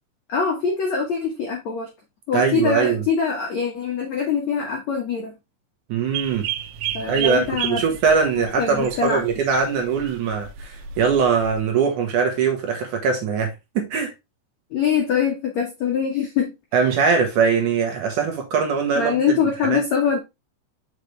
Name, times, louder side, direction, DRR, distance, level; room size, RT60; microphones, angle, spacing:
voice 1, 0.3-1.9 2.3-5.3 6.9-7.8 8.6-9.2 14.7-16.5 19.0-20.2, left 6 dB, 65° left, 1.8 m, -23 dB
voice 2, 2.3-3.0 5.9-6.5 7.1-14.1 16.7-19.4 19.6-19.8, right 6 dB, 65° right, 2.0 m, -21 dB
sound 1, 6.1-11.6, right 11 dB, 85° right, 3.0 m, -33 dB
6.4 x 5.4 x 3.2 m
omnidirectional pair, 5.2 m